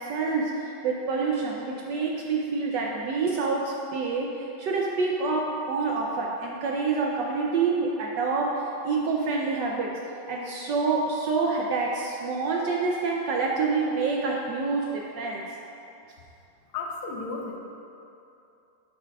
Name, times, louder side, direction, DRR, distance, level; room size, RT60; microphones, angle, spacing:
voice 1, 0.0-10.0 10.3-15.5, right 4 dB, 75° right, -1 dB, 1.0 m, -27 dB
voice 2, 16.7-17.6, left 4 dB, 90° left, 1 dB, 1.7 m, -33 dB
10.5 x 5.8 x 2.3 m, 2.8 s
omnidirectional pair, 2.3 m